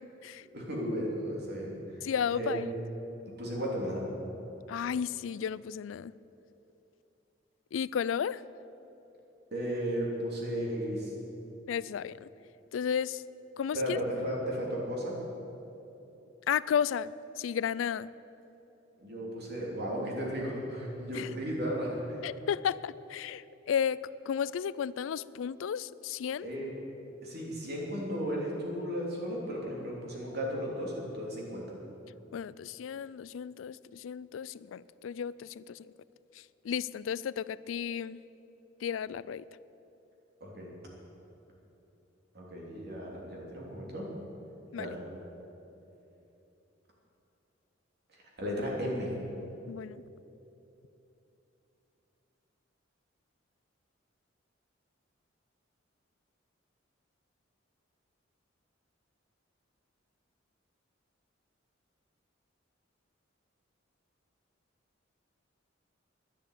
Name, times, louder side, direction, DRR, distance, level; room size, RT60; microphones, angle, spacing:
voice 1, 0.5-1.7 2.3-2.6 3.4-4.0 9.5-11.1 13.7-15.1 19.0-22.2 26.4-26.7 27.2-31.6 40.4-40.7 42.3-44.1 44.8-44.9 48.4-49.1, equal, 60° right, -2 dB, 3.2 m, -34 dB
voice 2, 2.0-2.6 4.7-6.1 7.7-8.4 11.7-12.3 12.7-13.2 13.6-14.0 16.5-17.1 17.4-18.1 21.1-21.3 22.2-26.5 32.3-35.9 36.6-38.2 38.8-39.4 44.7-44.9 49.7-50.0, left 8 dB, 85° left, 19 dB, 0.3 m, -33 dB
11.0 x 10.0 x 8.5 m, 3.0 s
head